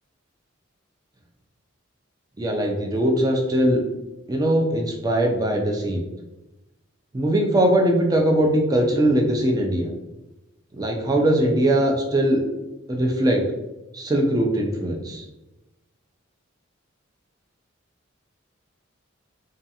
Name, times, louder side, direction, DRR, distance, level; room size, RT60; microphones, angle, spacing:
voice 1, 2.4-3.8 4.3-6.0 7.1-9.9 10.7-12.4 12.9-13.4 13.9-15.2, right 1 dB, 20° right, 1 dB, 0.3 m, -21 dB
2.4 x 2.3 x 2.7 m, 1.0 s
head